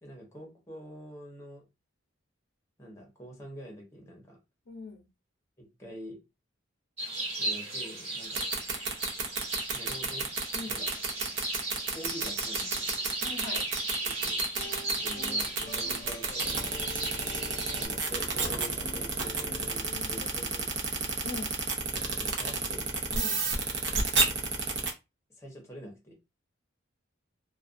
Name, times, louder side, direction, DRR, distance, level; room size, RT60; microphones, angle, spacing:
voice 1, 0.0-1.6 2.8-4.4 5.6-6.2 7.4-8.4 9.7-10.3 10.7-10.9 11.9-13.0 14.0-14.4 15.0-16.9 17.8-21.3 22.1-22.9 23.9-24.3 25.4-26.1, equal, 15° left, 0.8 m, -46 dB
voice 2, 4.7-5.0 10.5-10.8 13.2-13.7 21.2-21.5 23.1-23.4, left 3 dB, 90° left, 0.7 m, -40 dB
sound 1, 7.0-17.9, right 2 dB, 35° right, 1.2 m, -35 dB
sound 2, 8.2-24.9, right 4 dB, 65° right, 0.7 m, -30 dB
sound 3, 14.5-20.3, left 1 dB, 45° left, 0.6 m, -46 dB
2.4 x 2.2 x 2.5 m
head